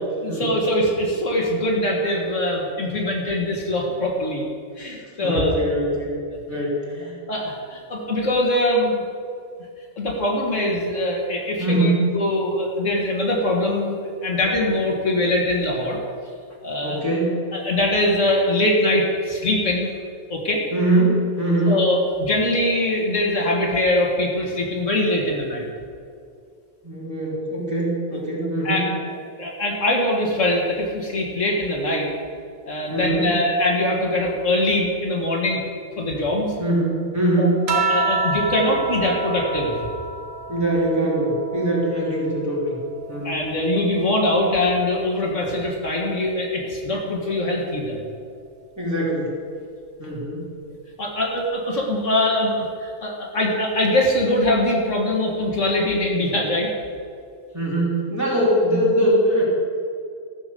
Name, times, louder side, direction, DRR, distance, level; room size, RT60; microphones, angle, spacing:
voice 1, 0.2-4.4 4.8-5.6 7.3-9.0 10.0-16.0 16.6-17.0 17.5-19.9 20.3-20.6 21.7-25.7 28.6-29.1 29.4-32.1 32.7-35.6 36.0-36.5 37.4-39.8 43.0-48.0 51.0-56.7, left 1 dB, 70° left, -1 dB, 2.3 m, -22 dB
voice 2, 5.2-6.1 6.5-7.1 11.6-12.1 16.8-17.4 20.7-21.8 26.8-28.9 32.9-33.3 36.6-37.6 40.5-42.8 43.1-43.3 48.8-49.3 50.0-50.4 57.5-59.4, right 1 dB, 15° right, -6 dB, 3.4 m, -22 dB
sound 1, 37.7-42.5 42.9-44.7 45.9-46.4, right 4 dB, 80° right, 1.4 m, -29 dB
14.5 x 7.1 x 6.8 m, 2.3 s
omnidirectional pair, 1.3 m